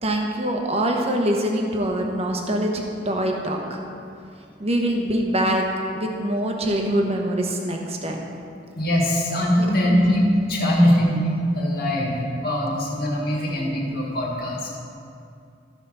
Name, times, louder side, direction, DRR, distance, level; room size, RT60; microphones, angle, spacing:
voice 1, 0.0-3.8 4.6-5.6 5.9-8.3 9.9-10.2, right 1 dB, 35° right, 1 dB, 1.1 m, -24 dB
voice 2, 8.8-14.7, equal, 55° left, -3 dB, 1.9 m, -22 dB
13.5 x 5.1 x 5.6 m, 2.5 s
head